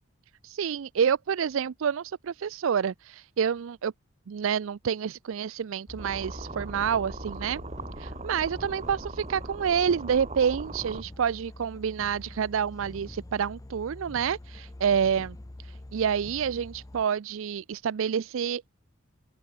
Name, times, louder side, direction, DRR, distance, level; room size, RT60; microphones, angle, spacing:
voice 1, 0.4-3.9 4.3-7.6 8.0-15.4 15.6-18.7, right 7 dB, 70° right, 0.4 m, -28 dB
sound 1, 5.9-17.0, left 1 dB, 15° left, 0.6 m, -44 dB
sound 2, 6.0-11.0, right 3 dB, 35° right, 1.6 m, -40 dB
open air
head